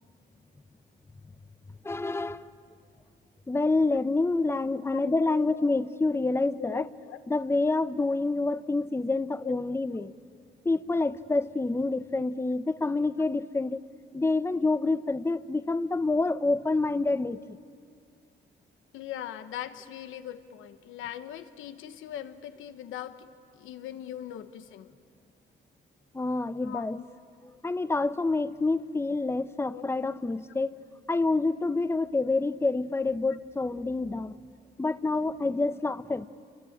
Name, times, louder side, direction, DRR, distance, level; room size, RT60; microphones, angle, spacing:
voice 1, 1.8-2.5 3.5-6.8 7.3-10.1 10.6-13.8 14.1-17.6 26.1-27.0 27.6-30.8 31.1-34.3 34.8-36.3, left 3 dB, 10° left, 0.8 m, -27 dB
voice 2, 4.5-5.7 6.6-7.2 8.5-8.6 9.4-9.6 9.9-10.1 18.9-23.3 23.5-24.9 26.6-27.0 29.7-30.1 34.0-34.4, left 11 dB, 85° left, 1.2 m, -41 dB
29.0 x 23.5 x 8.8 m
cardioid pair, 90°, 20 cm